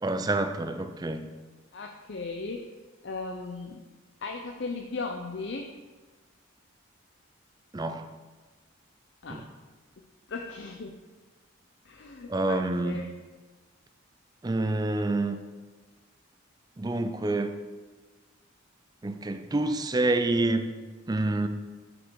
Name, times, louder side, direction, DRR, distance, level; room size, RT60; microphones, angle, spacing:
voice 1, 0.0-1.3 7.7-8.1 9.3-9.4 12.3-13.0 14.4-15.4 16.8-17.6 19.0-20.7 21.1-21.5, right 2 dB, 20° right, 9 dB, 0.4 m, -27 dB
voice 2, 1.7-2.6 3.0-3.8 4.2-5.7 9.2-9.5 10.3-11.0 11.8-13.1, left 3 dB, 55° left, 3 dB, 0.5 m, -37 dB
8.6 x 5.2 x 4.7 m, 1.3 s
head